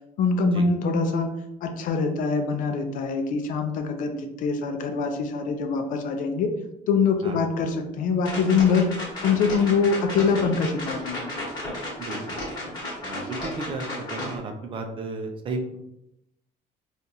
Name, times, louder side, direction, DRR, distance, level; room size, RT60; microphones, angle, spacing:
voice 1, 0.2-1.3 1.6-6.5 6.9-11.4, left 5 dB, 55° left, 5 dB, 0.5 m, -24 dB
sound 1, 8.2-14.4, left 1 dB, 25° left, 1.3 m, -34 dB
voice 2, 12.0-12.4 13.0-13.8 14.1-15.8, right 3 dB, 35° right, 4 dB, 0.4 m, -33 dB
3.8 x 2.4 x 2.8 m, 0.84 s
cardioid pair, 155°, 16 cm